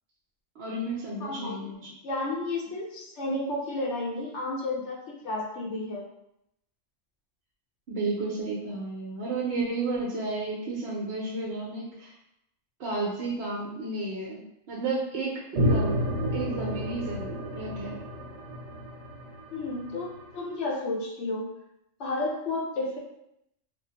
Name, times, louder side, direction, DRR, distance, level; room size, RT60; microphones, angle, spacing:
voice 1, 0.6-1.9 7.9-12.1 12.8-15.9 16.3-18.0, right 3 dB, 65° right, -4 dB, 0.8 m, -32 dB
voice 2, 1.2-1.7 2.0-6.1 19.5-21.5 22.0-23.0, left 2 dB, 75° left, -1 dB, 0.9 m, -32 dB
sound 1, 15.6-20.2, equal, 85° right, 1.1 m, -30 dB
3.5 x 2.0 x 2.8 m, 0.82 s
omnidirectional pair, 1.2 m